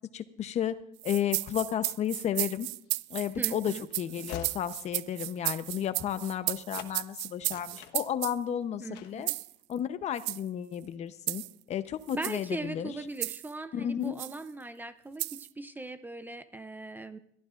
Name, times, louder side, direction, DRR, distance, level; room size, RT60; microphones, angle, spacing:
voice 1, 0.1-0.8 1.0-2.7 3.1-9.3 9.7-11.4 11.7-12.9 13.7-14.1, left 9 dB, 35° left, 12 dB, 0.8 m, -32 dB
sound 1, 1.0-8.4 9.3-9.5 10.2-10.4 11.3-11.5 12.1-12.5 13.2-13.5 14.2-14.4 15.2-15.5, right 21 dB, 65° right, 0.4 m, -34 dB
Train / Slam, 2.9-6.5 6.7-7.0 7.3-8.5 8.9-9.3, left 10 dB, 60° left, 1.3 m, -48 dB
voice 2, 3.4-3.8 8.8-9.3 12.1-17.2, right 2 dB, 10° right, 11 dB, 0.5 m, -39 dB
22.0 x 14.5 x 2.5 m, 0.71 s
cardioid pair, 145°, 19 cm